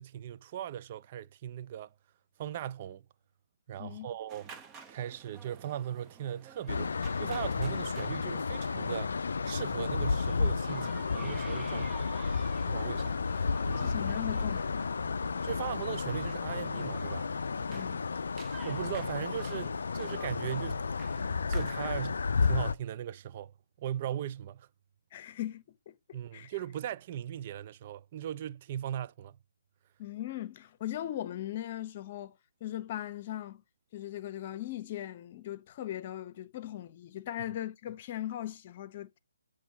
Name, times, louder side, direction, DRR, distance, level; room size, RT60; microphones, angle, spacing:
voice 1, 0.0-1.9 2.4-3.1 3.7-4.6 4.9-9.1 9.4-12.1 12.7-13.2 13.7-13.9 15.4-17.3 18.6-20.9 21.5-24.7 26.1-29.4, right 11 dB, 35° right, 0.4 m, -38 dB
sound 1, 4.3-21.7, right 5 dB, 20° right, 0.8 m, -52 dB
sound 2, 6.7-22.7, left 4 dB, 70° left, 0.4 m, -32 dB
voice 2, 13.8-14.8 17.7-18.0 25.1-26.5 30.0-33.6 33.9-39.2, left 12 dB, 35° left, 0.9 m, -39 dB
7.8 x 3.1 x 5.8 m
figure-of-eight pair, 150°, 0 cm